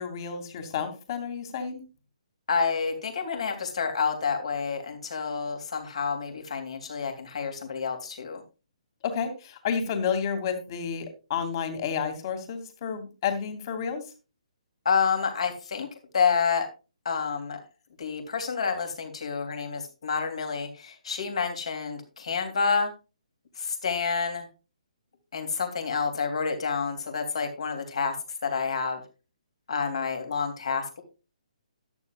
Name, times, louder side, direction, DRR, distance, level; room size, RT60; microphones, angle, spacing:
voice 1, 0.0-1.8 9.0-14.0, left 7 dB, 35° left, 7 dB, 2.6 m, -31 dB
voice 2, 2.5-8.4 14.8-15.9 16.1-16.7 17.0-17.6 18.0-22.9 23.6-24.5 25.3-28.2 28.4-29.0 29.7-31.0, left 5 dB, 55° left, 6 dB, 3.2 m, -28 dB
13.5 x 11.5 x 2.4 m, 0.31 s
figure-of-eight pair, 135°, 4 cm